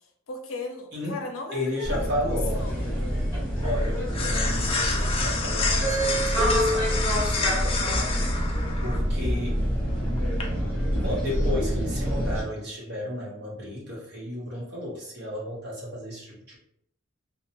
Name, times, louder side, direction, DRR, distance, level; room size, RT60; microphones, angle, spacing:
voice 1, 0.3-2.9, left 3 dB, 85° left, 3 dB, 0.5 m, -37 dB
voice 2, 1.5-2.7 3.6-8.1 8.8-9.6 11.0-16.6, left 1 dB, 55° right, -3 dB, 0.8 m, -33 dB
sound 1, 1.8-12.4, equal, 15° right, 1.1 m, -26 dB
sound 2, 1.9-10.4, left 3 dB, 30° left, 0.3 m, -31 dB
2.6 x 2.0 x 2.7 m, 0.73 s
head